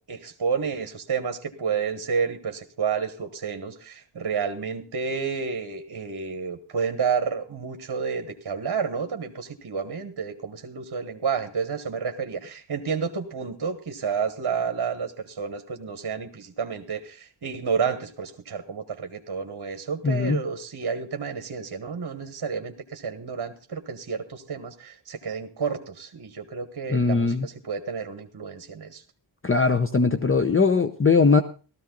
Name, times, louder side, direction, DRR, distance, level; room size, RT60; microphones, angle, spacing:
voice 1, 0.0-29.0, right 6 dB, 50° right, 7 dB, 1.4 m, -30 dB
voice 2, 20.0-20.4 26.9-27.5 29.4-31.4, left 4 dB, 25° left, 7 dB, 0.7 m, -20 dB
15.5 x 13.5 x 3.9 m, 0.35 s
wide cardioid pair, 130°, 49 cm